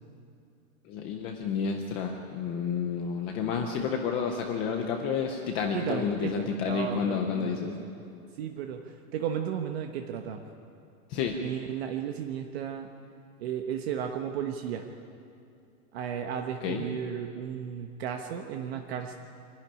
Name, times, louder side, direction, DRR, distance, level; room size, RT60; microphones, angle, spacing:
voice 1, 0.9-7.8 11.1-11.4 16.6-16.8, left 6 dB, 15° left, 3 dB, 0.4 m, -30 dB
voice 2, 5.7-7.9 8.3-10.4 11.4-12.9 13.4-14.9 15.9-19.1, right 8 dB, 45° right, 5 dB, 1.2 m, -34 dB
25.5 x 11.5 x 10.0 m, 2.6 s
supercardioid pair, 165°, 43 cm